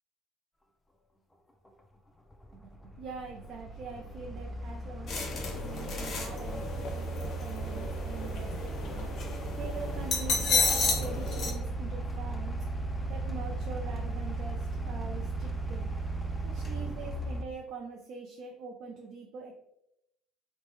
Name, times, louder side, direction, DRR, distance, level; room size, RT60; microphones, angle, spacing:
sound 1, 1.7-1.8 2.3-17.4, right 2 dB, 10° left, 0.4 m, -36 dB
voice 1, 2.5-9.1 9.5-12.6 13.1-15.9 16.4-19.6, right 4 dB, 60° right, 1 dB, 0.4 m, -44 dB
sound 2, 5.1-11.5, left 3 dB, 50° left, 0.7 m, -32 dB
3.0 x 2.1 x 3.0 m, 0.80 s
supercardioid pair, 75°, 0 cm